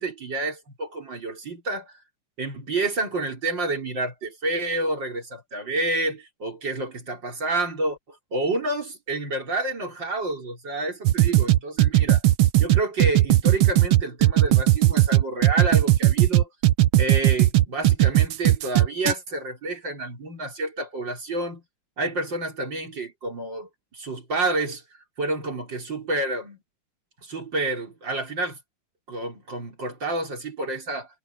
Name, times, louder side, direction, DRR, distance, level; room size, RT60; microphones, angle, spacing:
voice 1, 0.0-2.0 2.4-12.2 12.6-16.5 17.0-21.6 22.0-24.8 25.2-26.6 27.2-28.6 29.1-31.1, right 2 dB, 60° right, 5.2 m, -29 dB
sound 1, 11.1-19.1, right 14 dB, 80° right, 1.6 m, -17 dB
omnidirectional pair, 2.3 m